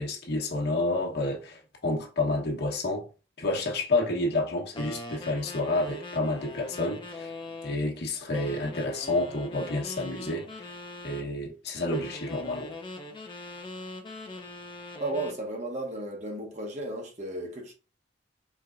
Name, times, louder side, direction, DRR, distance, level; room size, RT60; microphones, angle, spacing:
voice 1, 0.0-3.1 3.4-7.3 7.6-10.7 11.0-12.7, left 2 dB, 60° left, 1.1 m, -29 dB
sound 1, 4.7-7.8 8.3-11.3 11.9-15.4, left 2 dB, 25° left, 0.6 m, -41 dB
voice 2, 15.0-17.7, right 2 dB, 40° right, 1.0 m, -34 dB
4.4 x 3.4 x 2.5 m
head